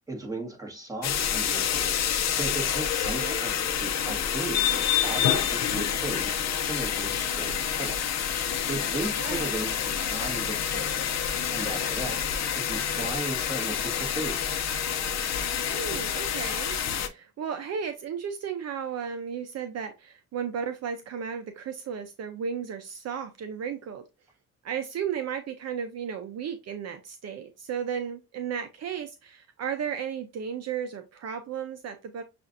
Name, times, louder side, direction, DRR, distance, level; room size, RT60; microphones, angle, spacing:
voice 1, 0.1-8.0 8.3-11.0 11.5-14.4, right 2 dB, 10° right, 1.6 m, -36 dB
sound 1, 1.0-17.1, left 9 dB, 60° left, 0.7 m, -28 dB
voice 2, 9.2-9.5 15.7-16.8 17.0-24.1 24.6-32.2, right 7 dB, 60° right, 0.6 m, -34 dB
6.9 x 2.5 x 2.5 m
cardioid pair, 90°, 30 cm